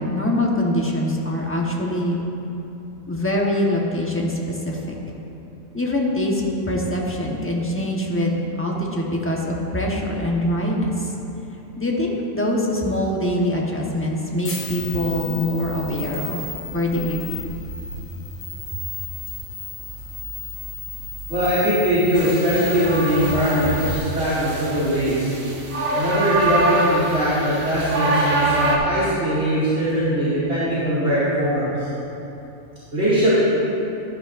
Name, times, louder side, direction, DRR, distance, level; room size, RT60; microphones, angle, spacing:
voice 1, 0.0-2.1 3.1-4.4 4.6-5.0 5.7-11.1 11.8-17.3, left 1 dB, 10° left, -2 dB, 1.0 m, -23 dB
sound 1, 14.4-24.0, left 3 dB, 75° left, 2.1 m, -33 dB
voice 2, 21.3-25.3 25.9-31.9 32.9-33.3, right 1 dB, 50° right, -12 dB, 2.5 m, -21 dB
sound 2, 22.1-28.8, right 2 dB, 80° right, 1.5 m, -25 dB
12.0 x 11.0 x 2.6 m, 2.9 s
omnidirectional pair, 1.4 m